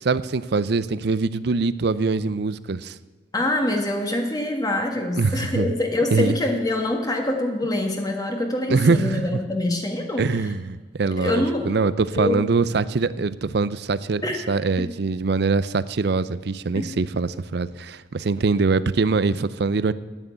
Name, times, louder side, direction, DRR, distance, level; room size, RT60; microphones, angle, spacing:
voice 1, 0.0-3.0 5.2-5.7 6.1-6.3 8.7-9.4 10.2-14.2 14.5-19.9, right 4 dB, 60° right, 16 dB, 0.5 m, -23 dB
voice 2, 3.3-10.5 11.1-11.7 12.1-12.4 14.2-14.4 14.8-14.9 16.7-16.8, left 1 dB, 20° left, 2 dB, 1.5 m, -25 dB
11.0 x 9.2 x 9.1 m, 1.3 s
head